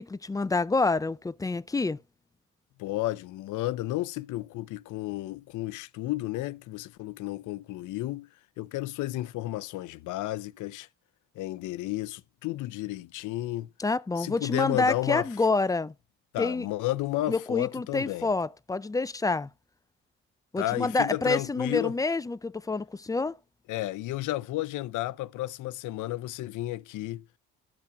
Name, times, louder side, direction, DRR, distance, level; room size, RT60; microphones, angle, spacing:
voice 1, 0.0-2.0 13.8-15.9 16.4-16.7 17.3-19.5 20.5-23.4, left 3 dB, 10° left, 0.3 m, -27 dB
voice 2, 2.8-8.3 8.6-10.9 11.4-13.7 14.2-15.3 16.3-18.3 20.6-21.9 23.7-27.2, left 16 dB, 80° left, 0.5 m, -32 dB
13.5 x 5.8 x 2.2 m
cardioid pair, 90°, 30 cm